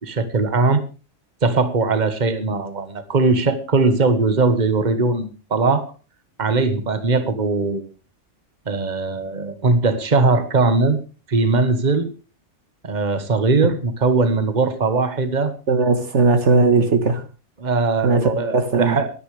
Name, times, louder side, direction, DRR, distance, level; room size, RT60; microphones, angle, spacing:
voice 1, 0.0-0.8 1.4-5.9 6.4-7.9 8.7-11.0 11.3-12.1 12.8-15.5 17.6-19.1, right 3 dB, 35° right, 1.5 m, -20 dB
voice 2, 15.7-17.2 18.0-19.0, right 3 dB, 65° right, 1.6 m, -18 dB
23.0 x 10.0 x 3.3 m
omnidirectional pair, 1.3 m